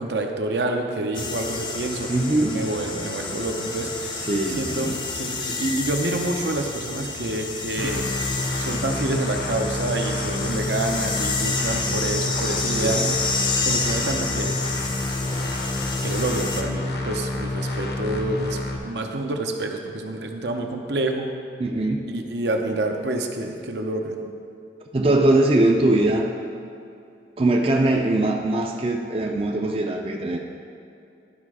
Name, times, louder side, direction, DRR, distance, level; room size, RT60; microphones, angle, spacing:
voice 1, 0.0-2.1 2.5-8.1 8.6-13.0 13.6-14.6 16.0-21.3 22.1-24.2, right 2 dB, 80° right, 3 dB, 0.7 m, -28 dB
sound 1, 1.1-16.6, left 3 dB, 25° left, 0.5 m, -29 dB
voice 2, 2.1-2.6 4.2-5.0 7.8-7.9 12.8-13.1 21.6-22.0 24.9-26.3 27.4-30.4, right 2 dB, 30° right, 2 dB, 0.4 m, -21 dB
sound 2, 7.8-18.8, left 2 dB, 65° left, 0.8 m, -29 dB
12.0 x 4.2 x 4.8 m, 2.6 s
head